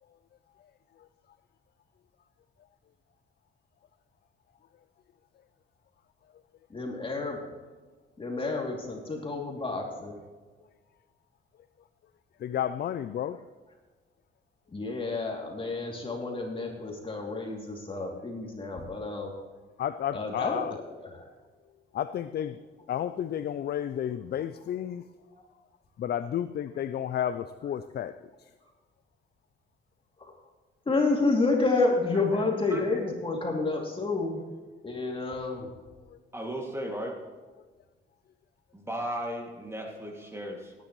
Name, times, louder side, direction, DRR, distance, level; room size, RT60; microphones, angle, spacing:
voice 1, 6.7-7.4 8.2-10.2 14.7-19.3 20.1-20.6 21.1-21.3 25.3-25.4 30.2-30.3 30.9-34.4 34.8-35.7, left 3 dB, 25° left, 0 dB, 2.7 m, -29 dB
voice 2, 12.4-13.4 19.8-20.8 21.9-22.6 22.9-25.0 26.0-28.1 28.4-28.5 36.1-36.2, left 10 dB, 55° left, 12 dB, 0.5 m, -32 dB
voice 3, 36.3-37.2 38.7-40.7, right 1 dB, 15° right, 1 dB, 2.3 m, -35 dB
17.5 x 10.5 x 3.1 m, 1.3 s
cardioid pair, 90°, 20 cm